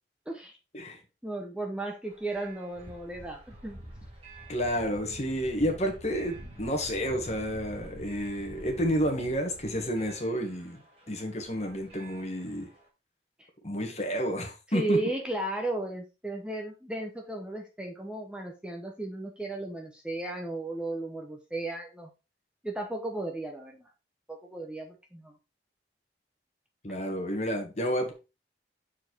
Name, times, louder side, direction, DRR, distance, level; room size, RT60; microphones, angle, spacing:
voice 1, 1.2-3.8 14.7-22.1 22.6-23.9 24.3-25.3, right 2 dB, 5° right, 0.9 m, -35 dB
sound 1, 2.1-12.9, right 1 dB, 35° right, 2.2 m, -47 dB
voice 2, 4.5-12.7 13.6-15.0 26.8-28.1, equal, 40° left, 1.7 m, -30 dB
6.4 x 4.7 x 4.5 m
head